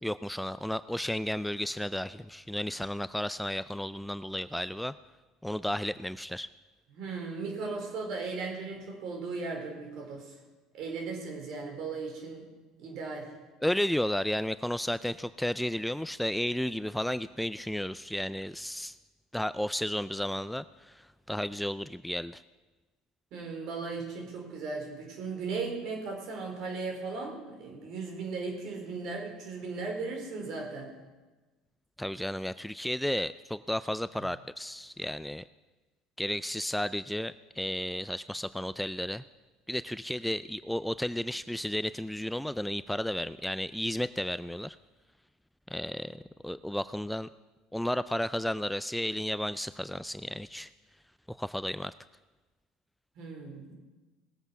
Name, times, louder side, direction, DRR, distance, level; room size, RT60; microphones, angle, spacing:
voice 1, 0.0-4.9 5.4-6.5 13.6-19.0 19.3-21.0 21.3-22.4 32.0-35.4 36.2-39.2 39.7-44.8 45.7-47.3 47.7-50.7 51.3-51.9, left 1 dB, 5° left, 15 dB, 0.3 m, -33 dB
voice 2, 6.9-10.3 10.7-12.5 12.8-13.3 23.3-30.9 53.2-53.8, right 4 dB, 60° right, 2 dB, 4.2 m, -37 dB
19.0 x 8.1 x 5.9 m, 1.2 s
hypercardioid pair, 85°, 0 cm